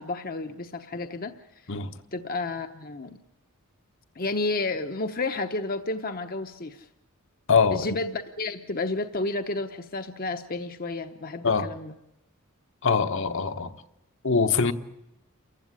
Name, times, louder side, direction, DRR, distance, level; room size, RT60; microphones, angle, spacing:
voice 1, 0.0-1.3 1.6-1.7 2.1-3.2 4.1-6.9 7.7-11.9, left 3 dB, 40° left, 0.9 m, -31 dB
voice 2, 7.5-7.9 11.4-11.7 12.8-13.7 14.2-14.7, left 5 dB, 60° left, 1.2 m, -23 dB
28.5 x 15.5 x 9.9 m
head